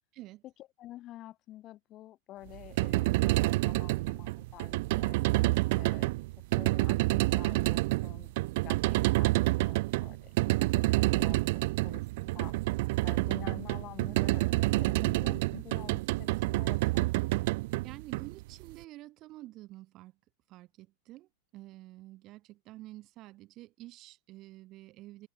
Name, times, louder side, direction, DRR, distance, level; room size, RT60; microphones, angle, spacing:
voice 1, 0.1-0.4 17.8-20.1 20.5-25.3, right 17 dB, 35° right, 1.1 m, -49 dB
voice 2, 0.8-5.2 5.7-6.1 6.6-8.3 8.6-12.6 13.0-17.1, left 14 dB, 30° left, 1.5 m, -49 dB
sound 1, 2.5-18.7, right 21 dB, 55° right, 0.4 m, -28 dB
open air
supercardioid pair, 155°, 0 cm